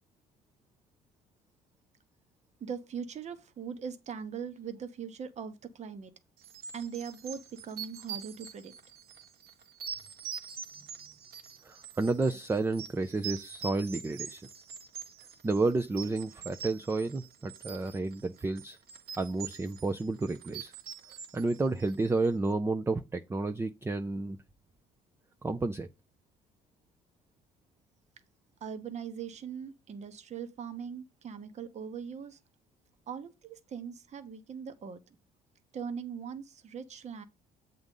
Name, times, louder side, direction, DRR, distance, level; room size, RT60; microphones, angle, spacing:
voice 1, 2.6-6.1 6.7-8.7 28.6-32.4 33.1-35.0 35.7-37.2, right 7 dB, 40° right, 1.1 m, -40 dB
sound 1, 6.4-22.3, right 8 dB, 65° right, 1.3 m, -44 dB
voice 2, 11.6-14.4 15.4-18.8 19.2-20.7 21.3-24.4 25.4-25.9, right 3 dB, 15° right, 0.6 m, -31 dB
7.9 x 3.8 x 5.4 m
cardioid pair, 110°, 17 cm